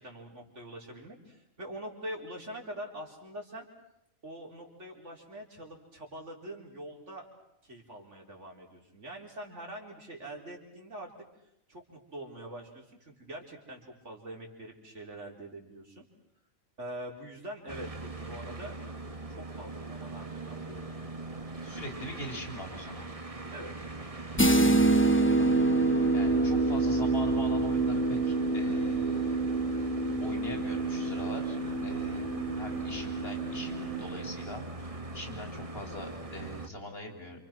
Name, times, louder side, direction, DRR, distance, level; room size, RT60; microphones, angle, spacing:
voice 1, 0.0-3.7 4.2-7.3 7.6-11.1 11.7-16.0 16.8-18.7 19.3-20.9 23.5-23.7, right 1 dB, 60° right, 0 dB, 4.7 m, -44 dB
sound 1, 17.7-36.7, right 3 dB, 25° right, 1.6 m, -40 dB
voice 2, 21.6-23.1 25.4-29.4 30.2-32.2 32.6-37.5, equal, 45° left, 3 dB, 4.6 m, -42 dB
sound 2, 24.4-34.0, right 3 dB, 10° left, 1.0 m, -27 dB
29.0 x 28.0 x 6.1 m, 0.79 s
omnidirectional pair, 1.4 m